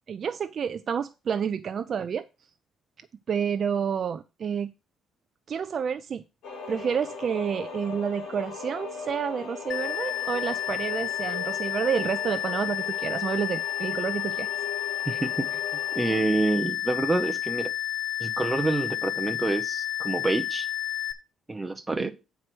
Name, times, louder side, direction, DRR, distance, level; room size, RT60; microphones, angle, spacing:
voice 1, 0.1-2.3 3.3-4.7 5.5-6.2 6.7-14.5 22.0-22.1, right 7 dB, 35° right, 0.3 m, -29 dB
sound 1, 6.4-16.2, left 4 dB, 60° left, 2.6 m, -39 dB
sound 2, 9.7-21.1, left 13 dB, 45° left, 0.6 m, -31 dB
voice 2, 15.1-15.6 15.9-17.7 18.2-20.7 21.5-22.1, right 2 dB, 10° right, 0.8 m, -27 dB
8.6 x 4.6 x 6.0 m
cardioid pair, 180°, 0 cm